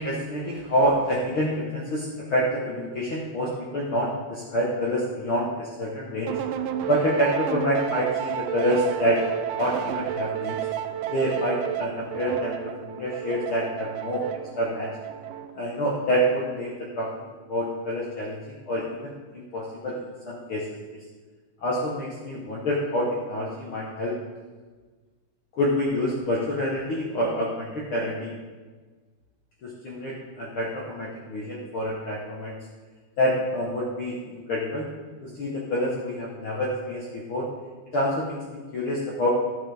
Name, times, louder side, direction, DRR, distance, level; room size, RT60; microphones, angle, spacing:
voice 1, 0.0-6.4 6.9-9.2 9.6-10.7 11.1-14.2 14.6-14.9 15.6-18.4 18.7-20.7 21.6-24.2 25.5-28.3 29.6-32.6 33.2-34.9 35.2-37.5 37.9-39.3, equal, 90° left, -4 dB, 1.1 m, -27 dB
sound 1, 6.3-15.7, right 11 dB, 85° right, 1.8 m, -31 dB
11.5 x 9.1 x 3.4 m, 1.4 s
omnidirectional pair, 4.1 m